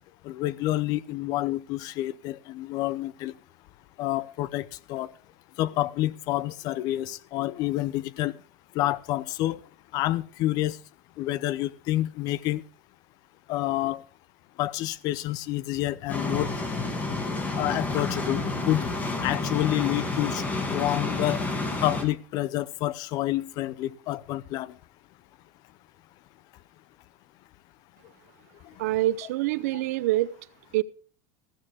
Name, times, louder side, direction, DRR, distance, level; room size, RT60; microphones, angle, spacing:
voice 1, 0.2-3.3 4.0-5.1 5.6-8.4 8.7-9.6 9.9-10.8 11.2-12.6 13.5-14.0 14.6-16.5 17.1-17.2 17.6-18.8 19.2-20.4 20.7-21.5 21.8-24.7, left 15 dB, 50° left, 0.7 m, -28 dB
sound 1, 16.1-22.0, left 3 dB, 20° left, 2.5 m, -30 dB
voice 2, 28.8-30.3 30.7-30.8, right 16 dB, 80° right, 0.7 m, -25 dB
15.0 x 13.5 x 3.6 m
supercardioid pair, 135°, 8 cm